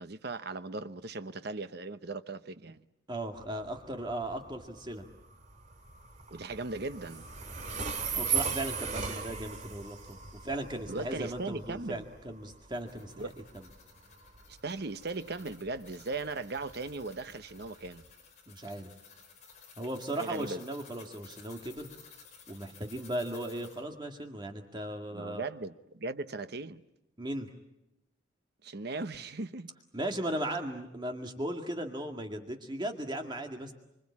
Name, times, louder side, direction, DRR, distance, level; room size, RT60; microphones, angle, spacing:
voice 1, 0.0-2.9 6.3-7.3 10.9-12.0 13.2-13.5 14.5-18.0 20.2-20.6 25.1-26.8 28.6-29.7, right 3 dB, 55° right, 1.0 m, -38 dB
voice 2, 3.1-5.0 8.1-10.2 10.4-13.1 18.5-18.9 19.8-21.9 22.5-25.4 27.2-27.5 29.9-33.7, right 1 dB, 25° right, 2.1 m, -37 dB
Train, 3.4-18.1, right 6 dB, 40° right, 2.2 m, -39 dB
sound 1, 12.5-23.8, left 6 dB, 35° left, 5.1 m, -56 dB
25.5 x 25.5 x 8.6 m
head